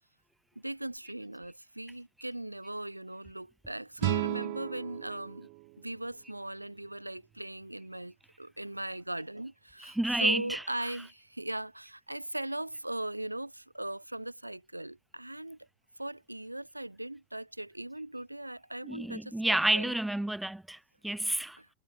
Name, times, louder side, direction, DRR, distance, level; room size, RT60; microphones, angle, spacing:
voice 1, 0.6-5.5 5.8-15.7 16.0-20.0 21.6-21.7, right 1 dB, 85° right, 2.0 m, -39 dB
sound 1, 4.0-7.0, right 34 dB, 45° right, 4.5 m, -36 dB
voice 2, 9.8-10.6 10.9-11.0 18.8-21.6, right 1 dB, 5° right, 3.9 m, -30 dB
figure-of-eight pair, 90°, 0 cm